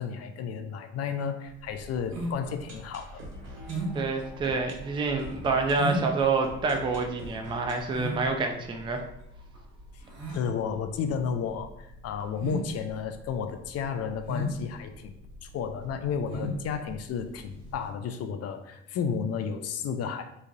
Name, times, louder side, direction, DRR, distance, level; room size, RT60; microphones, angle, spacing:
voice 1, 0.0-3.2 10.3-15.1 15.4-20.2, left 6 dB, 45° left, 7 dB, 0.4 m, -32 dB
sound 1, 1.5-17.9, right 1 dB, 70° right, 1.4 m, -36 dB
sound 2, 2.2-10.0 10.2-10.3 10.5-10.6 11.1-11.2, left 1 dB, 45° right, 1.3 m, -47 dB
voice 2, 3.9-9.0, right 4 dB, 15° right, 3 dB, 0.4 m, -27 dB
3.0 x 2.3 x 2.6 m, 0.79 s
supercardioid pair, 70°, 34 cm